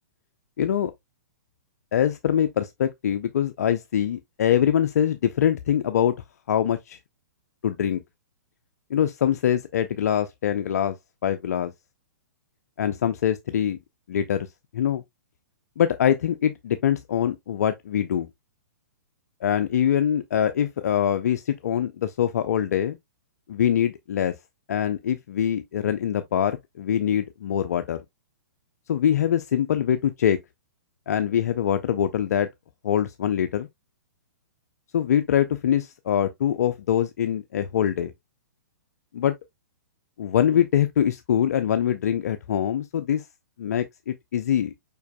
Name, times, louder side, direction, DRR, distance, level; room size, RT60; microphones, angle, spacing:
voice 1, 0.6-0.9 1.9-6.1 6.5-7.0 7.6-8.0 8.9-10.9 11.2-11.7 12.8-13.8 14.1-14.5 14.7-15.0 15.8-18.3 19.4-23.0 23.5-24.3 24.7-28.0 28.9-30.4 31.1-32.5 32.8-33.7 34.9-38.1 39.1-39.3 40.2-43.2 43.6-44.7, left 9 dB, 60° left, 0.5 m, -23 dB
5.2 x 4.6 x 2.2 m
figure-of-eight pair, 120°, 10 cm